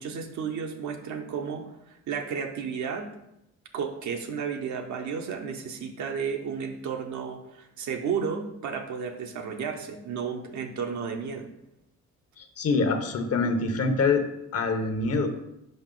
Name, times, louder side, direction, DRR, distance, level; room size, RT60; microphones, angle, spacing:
voice 1, 0.0-3.1 3.7-11.5, right 6 dB, 70° right, 4 dB, 0.9 m, -33 dB
voice 2, 12.4-14.2 14.5-15.3, left 4 dB, 55° left, 7 dB, 0.9 m, -25 dB
5.3 x 4.9 x 3.8 m, 0.84 s
cardioid pair, 90°, 30 cm